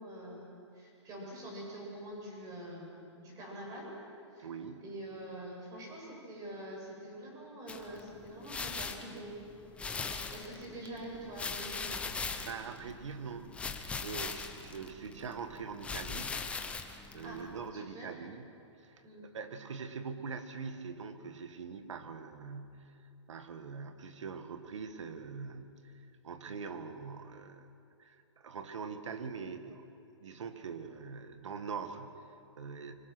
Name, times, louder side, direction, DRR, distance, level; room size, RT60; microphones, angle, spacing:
voice 1, 0.0-3.9 4.3-4.5 4.8-9.4 9.9-12.0 17.2-17.4 17.7-18.1 19.0-19.2, right 1 dB, 25° right, -2 dB, 7.6 m, -45 dB
voice 2, 4.4-4.8 12.4-16.4 16.9-18.5 18.8-23.0 23.3-27.7 28.0-29.9 30.2-32.9, right 5 dB, 85° right, 8 dB, 2.0 m, -43 dB
sound 1, 7.7-17.7, left 4 dB, 10° left, 1.0 m, -41 dB
26.0 x 24.5 x 6.2 m, 2.7 s
hypercardioid pair, 155°, 15 cm